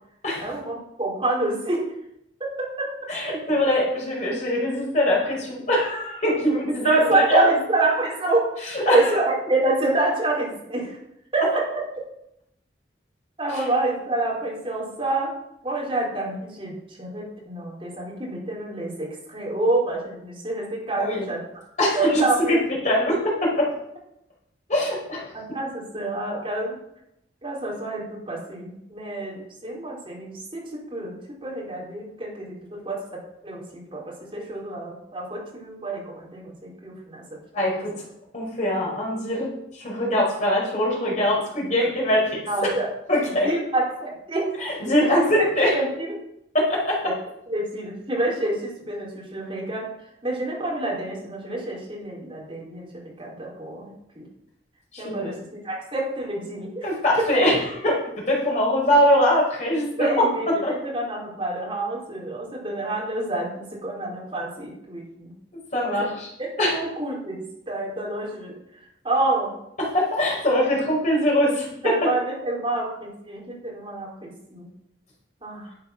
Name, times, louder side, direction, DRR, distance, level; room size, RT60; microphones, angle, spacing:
voice 1, 0.4-1.8 2.4-2.5 2.8-2.9 6.8-11.0 11.3-11.6 13.4-15.3 15.6-21.4 21.9-22.6 25.3-26.8 27.4-31.2 31.4-32.9 33.4-37.2 42.5-42.9 43.3-44.5 45.0-45.5 45.7-46.1 47.0-47.1 47.5-49.9 50.2-54.3 55.0-55.4 55.6-56.9 57.2-57.3 60.0-65.3 65.8-66.1 66.7-68.5 69.0-69.5 71.8-74.7 75.4-75.7, right 2 dB, 30° right, -4 dB, 4.5 m, -27 dB
voice 2, 3.1-7.5 8.6-9.2 13.5-13.7 21.0-21.3 21.8-23.7 24.7-25.3 37.5-37.9 38.3-42.7 43.1-43.5 44.6-45.8 46.5-47.0 54.9-55.3 56.8-60.2 60.6-60.7 65.7-66.3 66.6-66.8 69.8-72.1, left 1 dB, 40° left, -3 dB, 5.3 m, -22 dB
11.5 x 8.3 x 6.1 m, 0.79 s
head